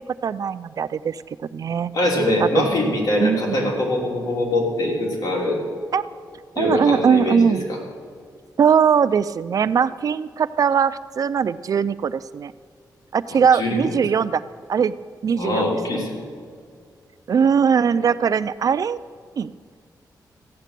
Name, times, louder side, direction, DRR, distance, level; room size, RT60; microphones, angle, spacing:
voice 1, 0.2-1.2 1.5-1.9 2.4-2.7 3.2-3.7 5.9-6.1 6.6-7.6 8.6-12.5 13.1-14.4 14.7-15.0 15.2-15.7 17.3-19.0 19.4-19.5, right 7 dB, 55° right, 15 dB, 0.4 m, -20 dB
voice 2, 1.9-5.6 6.5-7.8 13.5-14.0 15.3-16.2 17.8-18.1, left 1 dB, 60° left, -1 dB, 3.2 m, -23 dB
15.0 x 9.1 x 6.7 m, 2.1 s
wide cardioid pair, 120°, 7 cm